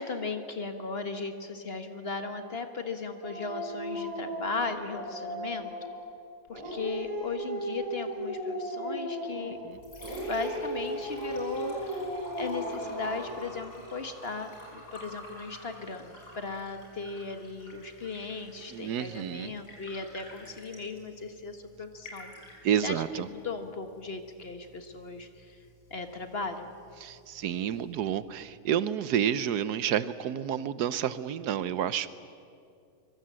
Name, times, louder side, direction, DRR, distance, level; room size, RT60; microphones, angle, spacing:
voice 1, 0.0-5.7 6.5-9.6 10.3-12.0 12.4-22.3 22.8-25.6 25.9-26.7, left 4 dB, 40° left, 7 dB, 1.6 m, -37 dB
Dog, 3.2-6.0 6.5-9.6 10.0-13.5, equal, 60° right, 5.7 m, -36 dB
Liquid, 9.5-28.5, left 1 dB, 85° left, 6.0 m, -49 dB
voice 2, 18.7-19.5 22.6-23.3 27.0-32.1, right 9 dB, 75° right, 15 dB, 1.3 m, -30 dB
24.5 x 23.0 x 7.6 m, 2.4 s
omnidirectional pair, 1.7 m